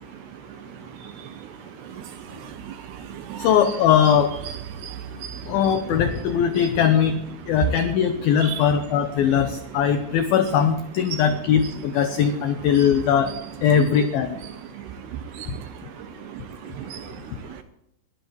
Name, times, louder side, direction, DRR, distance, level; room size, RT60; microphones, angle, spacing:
voice 1, 2.4-3.5 4.8-5.4 8.4-8.6 11.1-11.2 12.7-12.8 14.8-14.9 15.3-15.5 16.3-17.2, right 10 dB, 80° right, 8 dB, 2.5 m, -36 dB
voice 2, 3.4-4.3 5.5-7.1 7.5-13.3 13.6-14.4, left 8 dB, 85° left, 8 dB, 2.1 m, -20 dB
21.5 x 13.0 x 3.2 m, 0.85 s
omnidirectional pair, 5.4 m